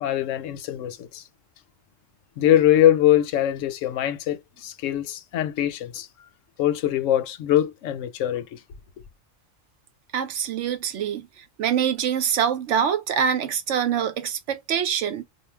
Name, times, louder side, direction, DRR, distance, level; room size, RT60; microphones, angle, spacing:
voice 1, 0.0-1.2 2.4-6.1 6.6-8.6, left 12 dB, 75° left, 0.9 m, -22 dB
voice 2, 10.1-11.3 11.6-15.2, right 8 dB, 70° right, 0.9 m, -24 dB
2.4 x 2.1 x 3.2 m
omnidirectional pair, 1.3 m